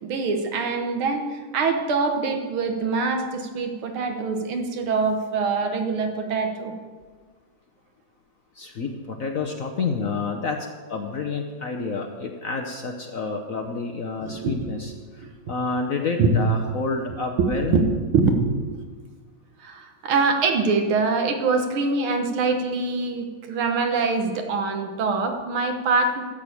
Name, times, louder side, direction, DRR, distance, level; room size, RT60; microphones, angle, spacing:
voice 1, 0.0-6.7 14.2-14.7 16.2-16.3 17.4-18.6 19.6-26.2, right 4 dB, 80° right, 5 dB, 2.1 m, -24 dB
voice 2, 8.6-17.9, left 4 dB, 55° left, 4 dB, 1.0 m, -29 dB
12.0 x 6.5 x 8.4 m, 1.5 s
omnidirectional pair, 2.3 m